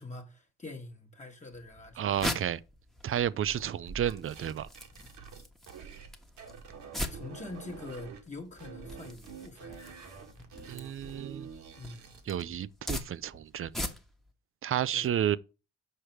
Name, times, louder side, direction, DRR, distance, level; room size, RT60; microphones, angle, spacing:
voice 1, 0.0-2.2 7.1-9.9 11.8-12.1 14.9-15.1, left 2 dB, 25° left, 1.4 m, -45 dB
sound 1, 1.5-14.3, left 1 dB, ahead, 1.2 m, -42 dB
voice 2, 2.0-2.6 3.0-4.7 10.7-11.5 12.3-13.7 14.6-15.4, right 10 dB, 45° right, 0.5 m, -31 dB
sound 2, 3.2-6.1 6.4-8.2 8.6-12.3, right 6 dB, 70° right, 2.0 m, -47 dB
6.6 x 4.9 x 4.5 m
cardioid pair, 90°, 30 cm